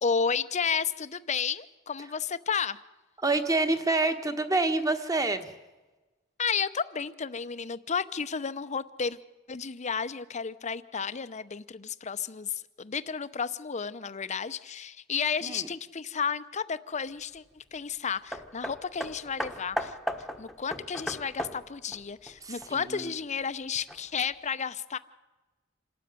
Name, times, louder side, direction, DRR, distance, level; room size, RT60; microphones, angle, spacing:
voice 1, 0.0-2.8 6.4-9.2 9.5-19.9 20.4-25.0, left 6 dB, 35° left, 14 dB, 0.7 m, -32 dB
voice 2, 3.2-5.5 15.4-15.7 22.4-23.1, right 3 dB, 20° right, 8 dB, 1.4 m, -27 dB
Hammer, 18.3-23.0 23.9-24.0, equal, ahead, 1.2 m, -36 dB
27.0 x 13.0 x 9.4 m, 1.2 s
head